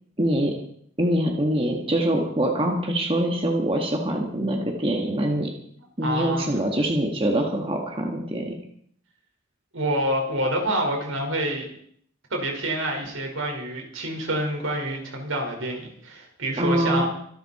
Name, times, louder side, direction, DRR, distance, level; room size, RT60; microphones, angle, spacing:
voice 1, 0.2-0.5 1.0-5.5 6.0-8.5 16.6-17.0, right 1 dB, 25° right, 2 dB, 1.8 m, -24 dB
voice 2, 6.0-6.6 9.7-11.7 12.3-17.0, right 1 dB, 75° right, 1 dB, 4.9 m, -27 dB
25.0 x 11.5 x 4.3 m, 0.64 s
head